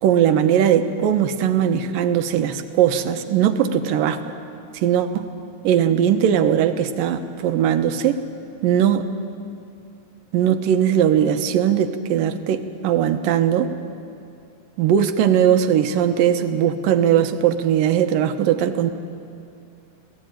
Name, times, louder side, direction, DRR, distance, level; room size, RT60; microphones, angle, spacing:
voice 1, 0.0-4.2 4.7-5.3 5.6-8.1 8.6-9.0 10.3-13.7 14.8-18.9, right 9 dB, 90° right, 8 dB, 2.8 m, -19 dB
28.5 x 18.5 x 9.2 m, 2.5 s
omnidirectional pair, 3.8 m